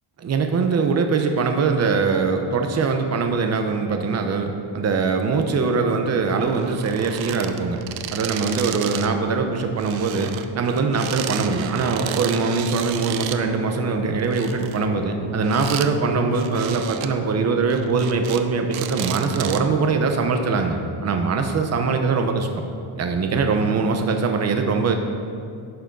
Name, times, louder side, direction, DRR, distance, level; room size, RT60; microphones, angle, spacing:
voice 1, 0.2-7.8 8.1-22.6 23.0-24.9, right 4 dB, 35° right, 5 dB, 0.8 m, -22 dB
sound 1, 6.4-9.1 9.4-13.4 14.1-15.9 16.3-17.1 17.6-18.4 18.7-19.8 20.4-20.5, right 11 dB, 70° right, 0.7 m, -33 dB
sound 2, 11.2-18.3, equal, 15° right, 2.7 m, -36 dB
11.0 x 6.6 x 5.3 m, 2.4 s
cardioid pair, 160°, 48 cm